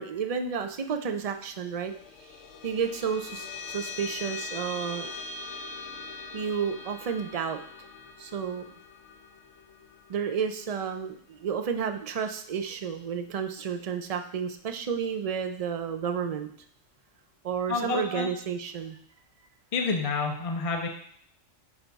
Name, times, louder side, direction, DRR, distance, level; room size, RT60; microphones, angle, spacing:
voice 1, 0.0-1.9 2.2-2.3 2.6-5.1 6.3-7.6 8.2-8.7 10.1-16.5 17.4-19.0, right 7 dB, 60° right, 6 dB, 0.3 m, -31 dB
sound 1, 1.6-12.4, left 4 dB, 75° left, 1.0 m, -42 dB
voice 2, 17.7-18.3 19.7-20.9, left 4 dB, 35° left, 3 dB, 0.6 m, -28 dB
9.9 x 3.5 x 4.0 m, 0.63 s
omnidirectional pair, 1.4 m